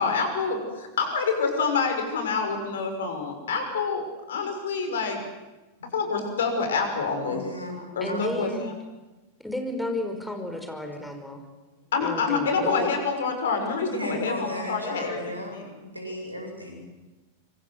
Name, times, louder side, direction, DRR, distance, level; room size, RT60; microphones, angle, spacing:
voice 1, 0.0-4.0 4.3-5.2 5.9-7.4 8.0-8.7 11.9-15.6, left 4 dB, 60° left, 5 dB, 6.3 m, -27 dB
voice 2, 7.2-8.3 11.7-11.8 13.9-16.8, equal, 85° right, 2 dB, 7.9 m, -36 dB
voice 3, 8.0-8.7 9.4-11.4 12.0-12.9, left 1 dB, 5° left, 5 dB, 5.3 m, -32 dB
26.0 x 25.0 x 8.0 m, 1.1 s
figure-of-eight pair, 90°, 0 cm